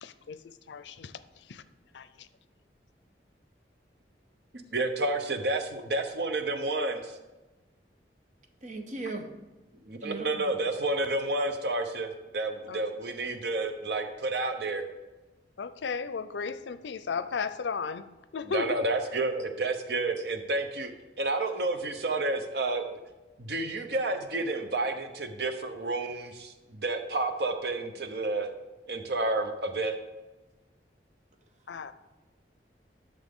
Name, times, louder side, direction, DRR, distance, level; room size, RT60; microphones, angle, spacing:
voice 1, 0.0-1.6 1.9-2.3 12.7-12.8 15.6-18.1 18.3-18.8 31.7-31.9, left 5 dB, 85° left, 14 dB, 0.5 m, -35 dB
voice 2, 4.5-7.2 9.8-14.8 18.5-20.9 21.2-22.8 23.4-28.5 28.9-30.0, right 2 dB, 65° right, 7 dB, 0.8 m, -30 dB
voice 3, 8.6-9.3 10.0-10.5, right 3 dB, 40° right, 5 dB, 0.9 m, -37 dB
11.5 x 6.5 x 3.6 m, 1.1 s
head